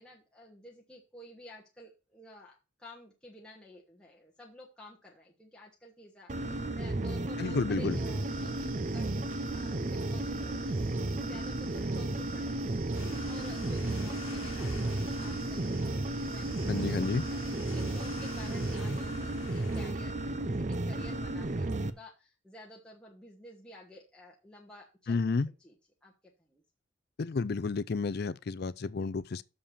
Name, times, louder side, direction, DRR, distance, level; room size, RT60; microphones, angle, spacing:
voice 1, 0.0-25.7 26.0-26.1 26.5-26.6, left 1 dB, 5° left, 1.2 m, -52 dB
sound 1, 6.3-21.9, right 2 dB, 35° right, 0.6 m, -33 dB
voice 2, 7.4-8.0 16.7-17.2 25.1-25.5 27.2-29.4, left 4 dB, 50° left, 0.4 m, -31 dB
sound 2, 7.9-18.8, right 8 dB, 90° right, 1.2 m, -50 dB
sound 3, 12.9-19.9, left 5 dB, 90° left, 1.4 m, -49 dB
6.7 x 5.6 x 7.1 m
head